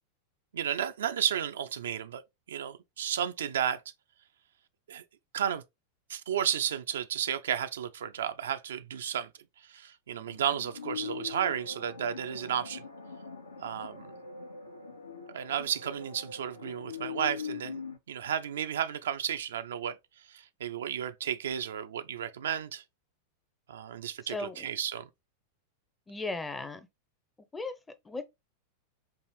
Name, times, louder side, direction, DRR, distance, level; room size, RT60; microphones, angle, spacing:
voice 1, 0.5-2.2 2.5-3.8 4.9-5.0 5.3-5.6 6.1-9.3 9.7-12.8 13.6-14.1 15.3-20.0 20.3-22.8 23.7-25.1, right 9 dB, 65° right, 0.3 m, -33 dB
sound 1, 10.1-18.0, left 6 dB, 80° left, 0.6 m, -42 dB
voice 2, 24.3-24.7 26.1-26.9 27.5-27.7 28.1-28.2, left 3 dB, 10° left, 0.6 m, -36 dB
4.7 x 2.5 x 3.1 m
figure-of-eight pair, 90°, 0 cm